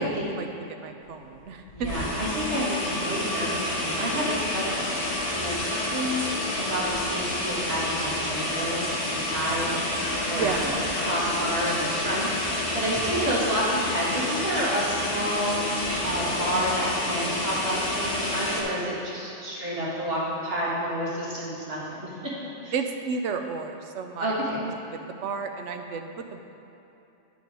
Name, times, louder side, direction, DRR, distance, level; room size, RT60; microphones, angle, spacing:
voice 1, 0.4-1.9 10.3-10.7 22.7-26.5, right 5 dB, 80° right, 6 dB, 0.9 m, -32 dB
sound 1, 1.3-1.4 1.7-18.6, left 1 dB, 85° left, 1.6 m, -29 dB
voice 2, 1.7-6.2 6.6-15.6 16.0-22.1 22.6-22.7 24.2-24.6, equal, 55° right, -7 dB, 2.0 m, -30 dB
9.3 x 5.2 x 4.9 m, 3.0 s
omnidirectional pair, 1.2 m